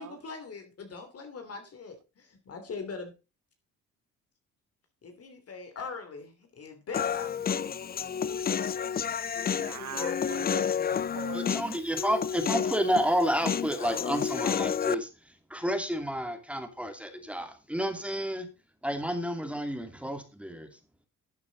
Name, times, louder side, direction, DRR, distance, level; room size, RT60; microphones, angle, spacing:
voice 1, 0.0-3.1 5.0-7.8, left 4 dB, 50° left, 2.9 m, -42 dB
Human voice, 6.9-15.0, left 7 dB, 30° left, 0.5 m, -30 dB
voice 2, 9.0-11.4, right 13 dB, 70° right, 0.9 m, -42 dB
voice 3, 11.3-18.5 18.8-20.8, equal, 5° right, 2.6 m, -30 dB
12.5 x 8.6 x 4.0 m
cardioid pair, 90°, 30 cm